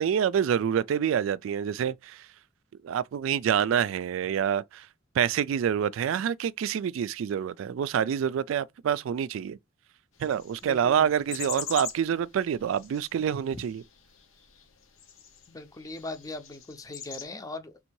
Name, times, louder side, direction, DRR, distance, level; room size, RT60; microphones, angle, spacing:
voice 1, 0.0-2.3 2.8-4.9 5.2-9.6 10.2-13.8, right 8 dB, 80° right, 0.3 m, -27 dB
sound 1, 10.2-17.2, left 7 dB, 90° left, 1.1 m, -43 dB
voice 2, 10.6-11.1 13.5-13.6 15.5-17.8, left 2 dB, 15° left, 0.6 m, -40 dB
3.6 x 2.7 x 4.5 m
head